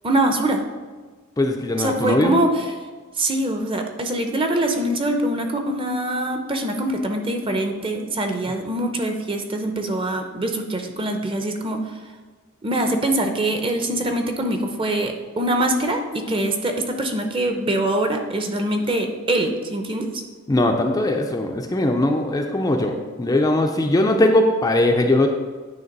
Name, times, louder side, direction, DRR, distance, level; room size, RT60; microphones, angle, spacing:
voice 1, 0.0-0.6 1.8-2.7 3.2-11.8 12.6-20.1, right 1 dB, 25° right, 4 dB, 0.7 m, -23 dB
voice 2, 1.4-2.4 20.5-25.3, left 1 dB, 20° left, 3 dB, 0.4 m, -20 dB
9.3 x 3.4 x 5.2 m, 1.4 s
head